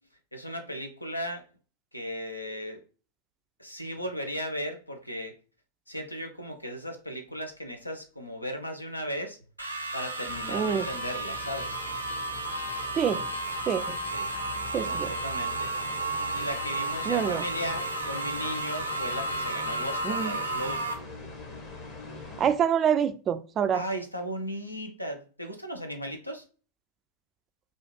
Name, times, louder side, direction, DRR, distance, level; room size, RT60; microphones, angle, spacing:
voice 1, 0.3-1.4 1.9-2.8 3.6-5.4 5.9-9.4 9.9-11.8 14.1-14.2 14.8-15.7 16.3-20.9 23.7-26.4, equal, 85° left, 0.7 m, -36 dB
sound 1, 9.6-20.9, right 2 dB, 90° right, 0.7 m, -33 dB
sound 2, 10.3-22.5, left 3 dB, 40° left, 1.0 m, -43 dB
voice 2, 10.5-10.9 13.0-13.3 13.7-14.0 14.7-15.1 17.1-17.4 20.0-20.3 22.4-23.8, right 8 dB, 30° right, 0.3 m, -26 dB
4.3 x 2.4 x 3.1 m
figure-of-eight pair, 90°, 0 cm